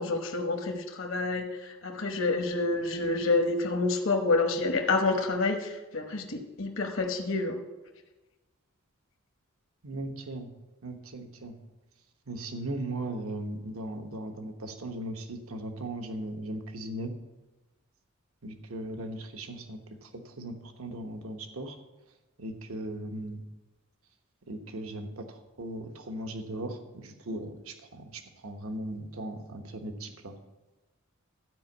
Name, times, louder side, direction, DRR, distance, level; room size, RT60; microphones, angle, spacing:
voice 1, 0.0-7.6, left 3 dB, 65° left, 3 dB, 1.0 m, -28 dB
voice 2, 9.8-10.5 10.8-11.6 12.3-17.1 18.4-21.8 22.4-23.4 24.5-30.3, right 1 dB, 80° right, 6 dB, 1.1 m, -38 dB
12.5 x 5.3 x 7.9 m, 1.1 s
head